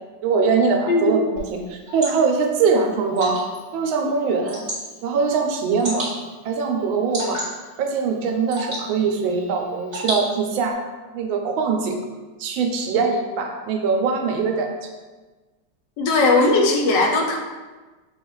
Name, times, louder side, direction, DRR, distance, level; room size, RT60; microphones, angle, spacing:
voice 1, 0.2-3.4 3.7-4.6 5.0-6.1 6.4-7.4 7.8-10.8 11.1-12.0 12.4-14.7, right 5 dB, 90° right, 3 dB, 1.4 m, -22 dB
Water / Drip, 1.4-10.7, equal, 30° right, 1.5 m, -35 dB
voice 2, 16.0-17.4, left 3 dB, 75° left, 2 dB, 1.1 m, -18 dB
5.5 x 2.3 x 3.0 m, 1.3 s
omnidirectional pair, 2.1 m